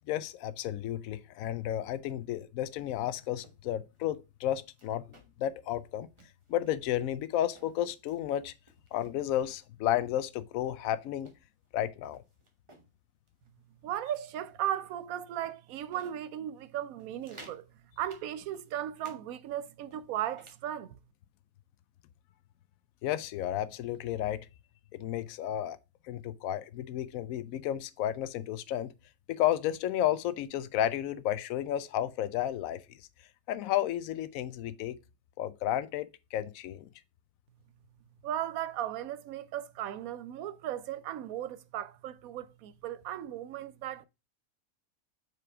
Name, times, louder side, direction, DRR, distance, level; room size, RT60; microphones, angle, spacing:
voice 1, 0.1-6.1 6.5-8.5 8.9-11.3 11.7-12.2 23.0-24.4 25.0-25.8 26.0-28.9 29.3-33.0 33.5-35.0 35.4-36.9, left 12 dB, 75° left, 1.0 m, -32 dB
sound 1, 2.9-3.6 3.9-4.1 4.5-5.5 5.8-5.9 6.2-6.9 7.4-8.2 8.7-9.6 10.1-10.2 10.6-12.9 13.3-13.5 13.9-14.5 15.0-15.1 15.4-16.2 16.6-16.7 17.0-17.6 18.1-19.2 19.5-20.6, right 2 dB, 25° right, 1.1 m, -57 dB
voice 2, 13.8-17.7 18.0-21.0 38.2-44.1, right 11 dB, 80° right, 1.0 m, -36 dB
5.0 x 4.7 x 4.7 m
omnidirectional pair, 1.5 m